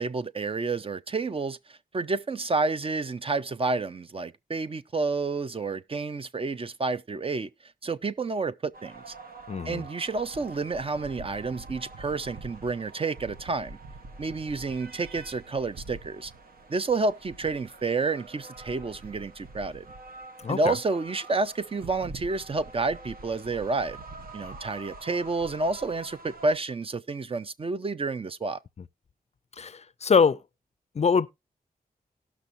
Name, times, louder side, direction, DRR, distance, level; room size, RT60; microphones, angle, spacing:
voice 1, 0.0-7.5 7.8-9.1 9.7-13.8 14.2-16.3 16.7-19.9 20.5-24.0 24.3-28.6, right 3 dB, 35° right, 0.5 m, -30 dB
sound 1, 8.7-26.6, right 3 dB, 70° right, 1.0 m, -45 dB
voice 2, 9.5-9.8 20.4-20.8 29.6-30.4 31.0-31.3, left 5 dB, 45° left, 0.4 m, -23 dB
18.0 x 6.1 x 2.6 m
wide cardioid pair, 125°, 16 cm